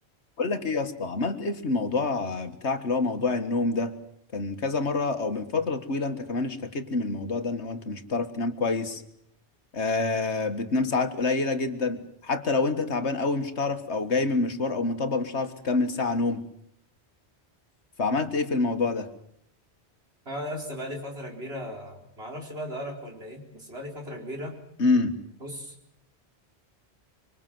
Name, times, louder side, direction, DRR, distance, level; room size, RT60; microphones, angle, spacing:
voice 1, 0.4-4.0 4.3-9.0 9.7-16.5 18.0-19.1 24.8-25.2, left 3 dB, 85° left, 9 dB, 1.9 m, -27 dB
voice 2, 20.2-24.6 25.4-25.7, equal, 65° right, 1 dB, 4.8 m, -37 dB
25.5 x 24.5 x 7.7 m, 0.71 s
omnidirectional pair, 1.1 m